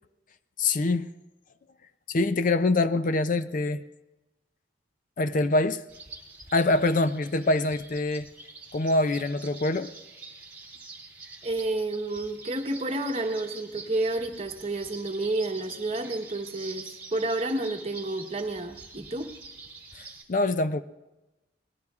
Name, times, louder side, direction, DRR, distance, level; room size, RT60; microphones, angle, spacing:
voice 1, 0.6-1.1 2.1-3.8 5.2-5.8 6.5-8.3 8.7-9.9 19.9-20.8, left 2 dB, 45° left, 0.4 m, -25 dB
sound 1, 5.9-20.2, right 3 dB, 10° right, 2.4 m, -46 dB
voice 2, 11.4-19.3, right 2 dB, 35° right, 1.1 m, -30 dB
24.5 x 19.0 x 2.4 m
head